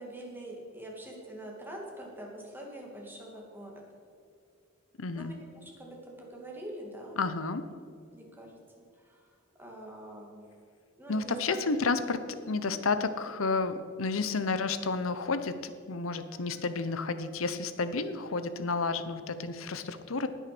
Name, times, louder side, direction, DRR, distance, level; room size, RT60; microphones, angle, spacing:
voice 1, 0.0-3.9 5.1-7.2 8.1-8.5 9.0-9.2 9.6-10.4 11.0-11.6 16.3-16.6, right 1 dB, 10° right, -1 dB, 2.5 m, -44 dB
voice 2, 5.0-5.3 7.2-7.6 11.1-12.2 12.5-20.3, left 4 dB, 90° left, 11 dB, 0.8 m, -31 dB
19.0 x 6.4 x 6.1 m, 2.3 s
head